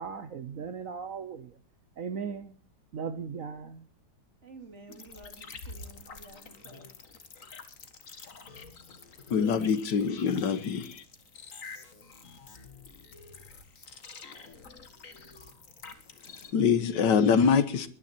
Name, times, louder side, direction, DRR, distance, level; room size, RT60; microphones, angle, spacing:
voice 1, 0.0-1.6 2.0-2.6 2.9-3.9, right 6 dB, 55° right, 1.1 m, -37 dB
voice 2, 4.4-6.9, right 3 dB, 40° right, 2.7 m, -51 dB
sound 1, 4.9-16.5, left 4 dB, 50° left, 2.0 m, -48 dB
voice 3, 9.3-11.0 16.5-17.9, left 6 dB, 80° left, 1.9 m, -24 dB
21.5 x 10.5 x 4.4 m
omnidirectional pair, 1.9 m